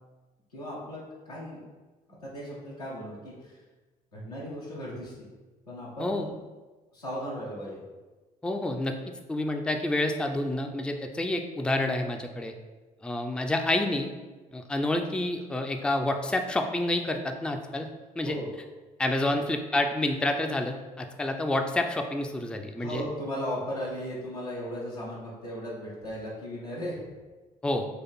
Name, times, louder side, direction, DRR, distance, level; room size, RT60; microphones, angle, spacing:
voice 1, 0.5-1.0 1.2-1.7 2.2-3.6 4.1-5.3 5.7-6.3 6.9-7.8 18.2-18.5 19.3-19.4 22.8-27.0, equal, 90° left, -7 dB, 1.0 m, -36 dB
voice 2, 8.4-9.0 9.3-12.5 13.0-14.1 14.5-17.9 18.2-18.4 19.0-23.0 27.6-27.9, left 1 dB, 5° left, 5 dB, 0.4 m, -28 dB
4.1 x 2.4 x 4.3 m, 1.3 s
figure-of-eight pair, 50°, 19 cm